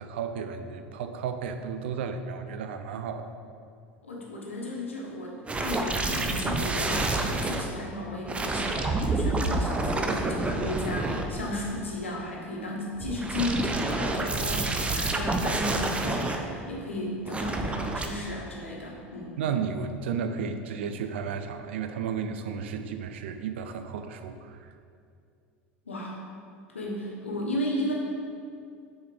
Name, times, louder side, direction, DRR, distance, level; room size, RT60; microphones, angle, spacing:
voice 1, 0.0-3.3 19.4-24.7, right 6 dB, 70° right, 8 dB, 0.5 m, -33 dB
voice 2, 4.0-19.4 25.9-26.2 26.7-27.9, left 1 dB, 85° left, -2 dB, 1.2 m, -34 dB
sound 1, 5.5-7.6 8.3-11.7 13.0-16.4 17.3-18.1, right 2 dB, 20° right, 0.7 m, -28 dB
6.6 x 4.3 x 4.9 m, 2.4 s
hypercardioid pair, 75°, 6 cm